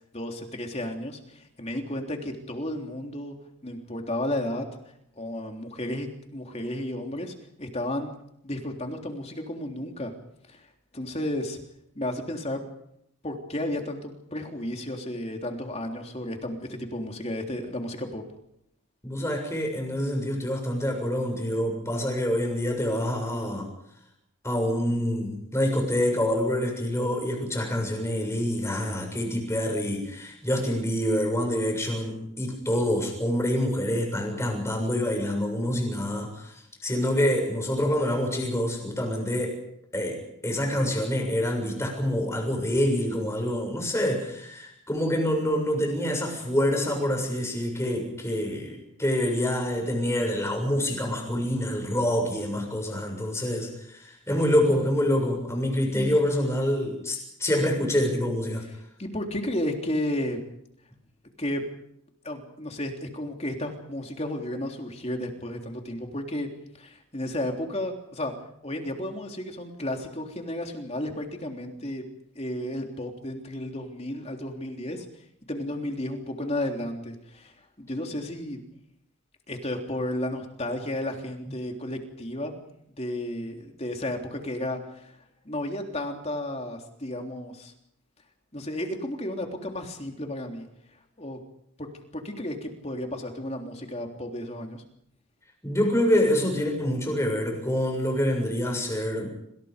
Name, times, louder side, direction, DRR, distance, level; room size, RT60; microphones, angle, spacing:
voice 1, 0.1-3.4 3.6-4.7 5.2-8.1 8.4-10.1 10.5-10.7 10.9-11.6 12.0-12.6 13.2-18.2 55.9-56.2 59.0-60.4 61.4-61.6 62.2-66.5 66.8-68.3 68.6-72.0 72.4-75.1 75.5-78.6 79.5-82.5 83.0-85.1 85.5-87.7 88.5-90.7 91.2-91.4 91.8-91.9 92.1-94.8, left 1 dB, 30° left, 3 dB, 3.5 m, -33 dB
voice 2, 19.0-23.7 24.4-36.5 36.8-39.6 39.9-58.6 95.6-99.3, left 1 dB, 10° left, 2 dB, 6.9 m, -26 dB
27.0 x 27.0 x 5.3 m, 0.74 s
head